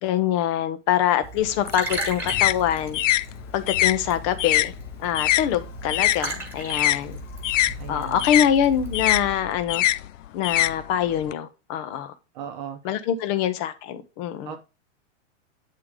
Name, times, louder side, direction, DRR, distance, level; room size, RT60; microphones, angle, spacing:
voice 1, 0.0-3.0 3.5-4.7 5.0-7.2 7.9-9.8 10.3-12.1 12.8-14.5, left 10 dB, 25° left, 0.5 m, -24 dB
Liquid, 1.2-9.3, right 2 dB, 5° right, 1.5 m, -37 dB
sound 1, 1.4-6.2 6.5-11.3, left 14 dB, 90° left, 0.5 m, -24 dB
voice 2, 7.8-8.3 12.3-12.8 14.4-14.6, right 9 dB, 40° right, 0.8 m, -36 dB
8.5 x 3.7 x 4.8 m
supercardioid pair, 155°, 37 cm